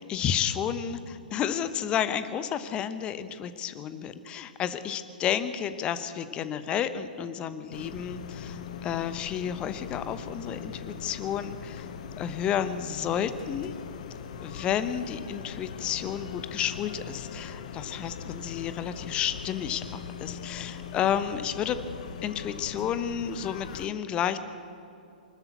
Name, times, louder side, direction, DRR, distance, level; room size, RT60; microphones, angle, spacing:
voice 1, 0.0-11.9 12.2-13.7 14.4-21.8 22.2-24.4, left 9 dB, 20° left, 12 dB, 1.0 m, -31 dB
sound 1, 7.7-23.9, left 7 dB, 50° left, 1.1 m, -41 dB
24.5 x 13.0 x 8.2 m, 2.6 s
figure-of-eight pair, 120°, 5 cm